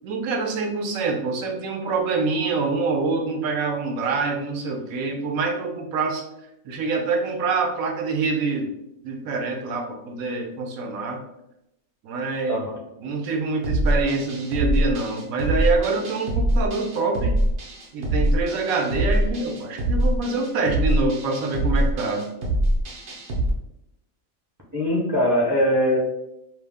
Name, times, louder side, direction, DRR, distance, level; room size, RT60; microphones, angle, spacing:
voice 1, 0.0-6.2 6.6-8.7 9.0-11.2 12.0-12.6 13.0-17.4 17.9-22.3, right 4 dB, 80° right, 2 dB, 1.0 m, -25 dB
sound 1, 13.6-23.5, right 1 dB, 55° right, 0.7 m, -24 dB
voice 2, 24.7-26.0, equal, 25° right, -5 dB, 0.4 m, -21 dB
2.7 x 2.0 x 3.3 m, 0.83 s
omnidirectional pair, 1.5 m